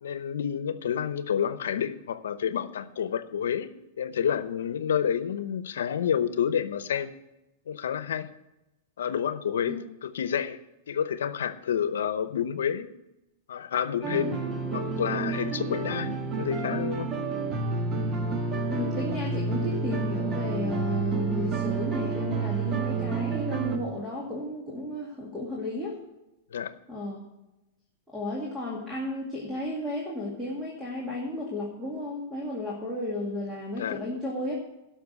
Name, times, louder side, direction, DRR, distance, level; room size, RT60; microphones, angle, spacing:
voice 1, 0.0-3.7 4.0-7.1 7.7-8.3 9.0-10.6 10.9-12.9 13.5-14.4 14.7-17.2 26.5-26.7 33.8-34.0, left 8 dB, 90° left, 14 dB, 0.8 m, -29 dB
sound 1, 14.0-23.8, right 4 dB, 20° right, 1.3 m, -29 dB
voice 2, 18.7-26.0 26.9-27.3 28.1-34.6, left 1 dB, 5° right, -4 dB, 2.2 m, -33 dB
12.0 x 6.0 x 8.2 m, 0.95 s
supercardioid pair, 145°, 0 cm